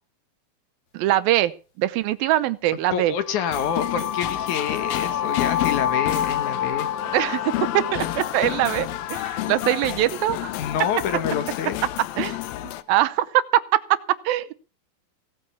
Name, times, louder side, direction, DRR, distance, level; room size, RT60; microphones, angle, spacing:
voice 1, 0.9-1.5 1.8-3.1 7.1-10.5 12.2-12.4 12.9-14.5, right 14 dB, 85° right, 14 dB, 2.7 m, -22 dB
voice 2, 2.9-6.9 10.6-11.9, left 7 dB, 65° left, 10 dB, 2.4 m, -27 dB
sound 1, 3.1-11.1, left 9 dB, 50° left, 2.5 m, -29 dB
sound 2, 3.5-12.8, left 15 dB, 80° left, 2.6 m, -30 dB
17.0 x 8.5 x 7.0 m, 0.37 s
omnidirectional pair, 4.2 m